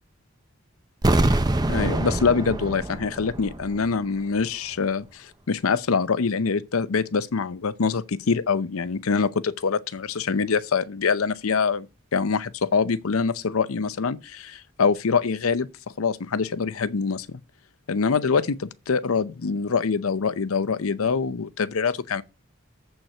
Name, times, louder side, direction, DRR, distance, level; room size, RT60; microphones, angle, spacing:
sound 1, 1.0-4.2, right 1 dB, 20° right, 0.5 m, -24 dB
voice 1, 1.7-11.9 12.1-15.7 16.0-17.4 17.9-22.2, left 5 dB, 90° left, 0.6 m, -24 dB
7.7 x 4.4 x 6.5 m
head